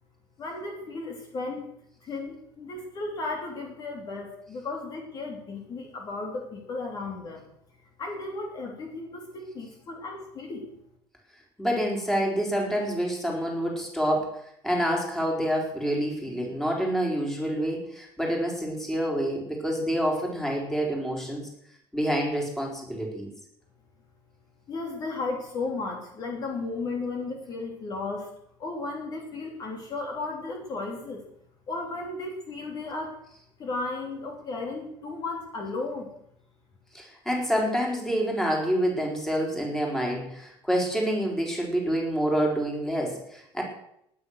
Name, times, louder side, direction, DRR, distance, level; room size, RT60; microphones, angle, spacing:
voice 1, 0.4-1.6 2.0-7.4 8.0-10.7 24.7-28.3 28.6-31.2 31.7-33.2 33.6-36.1, left 3 dB, 40° left, 2 dB, 3.1 m, -34 dB
voice 2, 11.6-21.4 21.9-23.3 36.9-43.6, equal, 5° left, -1 dB, 4.1 m, -27 dB
19.0 x 9.6 x 6.5 m, 0.74 s
cardioid pair, 160°, 10 cm